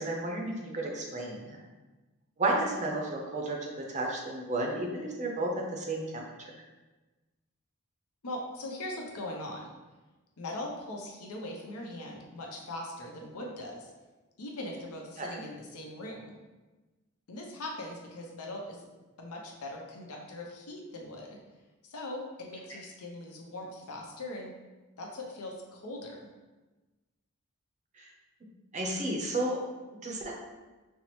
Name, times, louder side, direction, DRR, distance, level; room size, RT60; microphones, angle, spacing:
voice 1, 0.0-1.6 2.4-6.2 15.2-15.4 28.0-28.1 28.7-29.6 30.0-30.3, right 2 dB, 35° right, 0 dB, 0.6 m, -32 dB
voice 2, 8.2-9.7 10.4-13.9 14.4-16.3 17.3-18.9 19.2-21.4 21.8-24.5 25.0-26.3, left 1 dB, 80° left, 0 dB, 0.7 m, -40 dB
5.4 x 2.0 x 3.0 m, 1.2 s
head